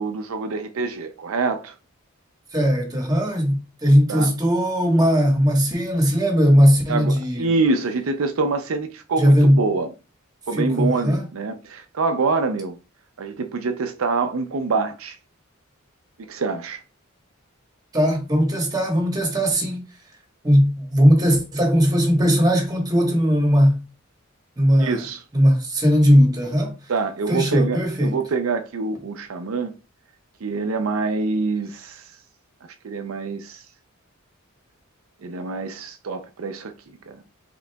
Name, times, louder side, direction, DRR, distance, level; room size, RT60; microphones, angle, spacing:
voice 1, 0.0-1.7 4.1-4.3 6.9-9.9 10.5-12.8 13.2-15.2 16.2-16.8 24.8-25.2 26.9-29.7 30.4-32.1 32.8-33.6 35.2-37.2, right 4 dB, 80° right, 0.5 m, -25 dB
voice 2, 2.5-7.5 9.2-9.6 10.5-11.2 17.9-19.9 20.4-23.8 24.6-25.0 25.3-26.7 27.3-28.2, equal, 20° right, 1.2 m, -18 dB
4.9 x 3.7 x 2.3 m
head